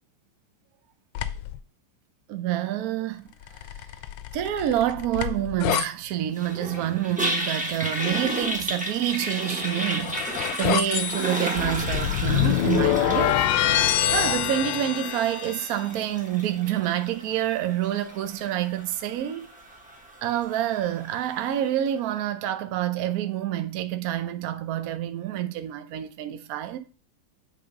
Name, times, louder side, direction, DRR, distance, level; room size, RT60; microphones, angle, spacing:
sound 1, 1.1-1.6 3.5-5.9 9.4-15.8, left 11 dB, 75° left, 1.2 m, -26 dB
voice 1, 2.3-3.2 4.3-10.2 10.6-13.4 14.1-19.5 20.2-26.8, right 11 dB, 65° right, 0.9 m, -27 dB
Toilet flush, 6.4-21.6, equal, 10° right, 0.5 m, -33 dB
8.7 x 3.4 x 5.2 m
omnidirectional pair, 2.1 m